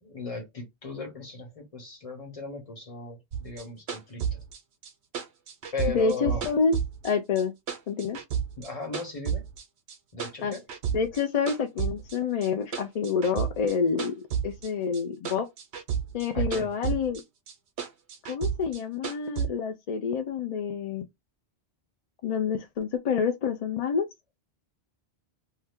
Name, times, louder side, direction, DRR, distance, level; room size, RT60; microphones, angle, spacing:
voice 1, 0.0-4.4 5.7-6.5 8.6-9.4 10.1-10.6 16.3-16.7, left 4 dB, 35° left, 1.2 m, -37 dB
sound 1, 3.3-7.4 7.7-9.6 9.9-11.2 11.5-15.0 15.3-17.2 17.5-19.5, right 8 dB, 85° right, 0.9 m, -31 dB
voice 2, 5.9-6.7 7.0-7.5 7.9-8.2 10.4-10.5 10.9-15.5 16.1-17.2 18.2-21.1 22.2-24.1, left 5 dB, 55° left, 0.4 m, -28 dB
2.8 x 2.2 x 3.4 m
omnidirectional pair, 1.1 m